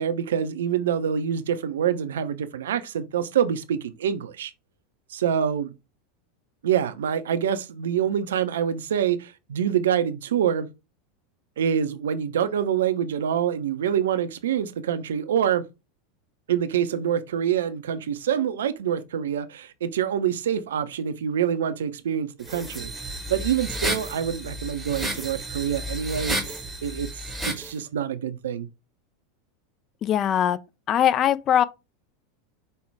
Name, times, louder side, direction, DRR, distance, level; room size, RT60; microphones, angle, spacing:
voice 1, 0.0-4.5 5.1-5.7 6.6-10.7 11.6-15.6 16.5-22.9 23.3-26.4 26.8-27.1 27.5-28.7, right 9 dB, 65° right, 0.4 m, -26 dB
sound 1, 22.4-27.7, right 1 dB, 5° right, 1.0 m, -32 dB
voice 2, 30.0-30.6 30.9-31.6, left 10 dB, 35° left, 0.3 m, -21 dB
5.2 x 2.2 x 3.2 m
figure-of-eight pair, 85°, 0 cm